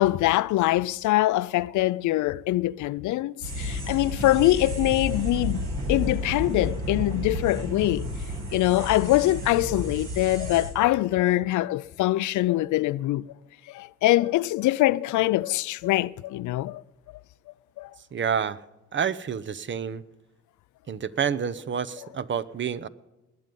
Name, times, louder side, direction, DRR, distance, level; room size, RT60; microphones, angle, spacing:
voice 1, 0.0-8.1 8.5-13.3 13.7-16.8 17.8-17.9, left 16 dB, 75° left, 0.5 m, -23 dB
sound 1, 3.4-10.7, left 1 dB, 65° right, 6.0 m, -31 dB
voice 2, 18.1-18.6 18.9-20.0 20.9-22.9, right 7 dB, 40° right, 0.7 m, -28 dB
20.0 x 7.7 x 5.3 m
cardioid pair, 90°, 30 cm